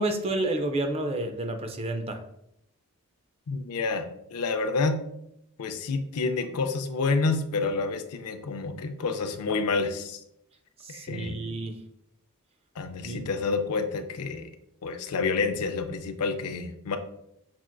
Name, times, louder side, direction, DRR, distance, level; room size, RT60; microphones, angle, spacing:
voice 1, 0.0-2.2 10.8-11.8 13.0-13.3, right 2 dB, 25° right, 6 dB, 0.4 m, -30 dB
voice 2, 3.5-5.0 5.6-10.2 10.9-11.4 12.8-14.5 14.8-17.0, left 4 dB, 80° left, 7 dB, 0.4 m, -29 dB
5.7 x 2.4 x 2.2 m, 0.79 s
head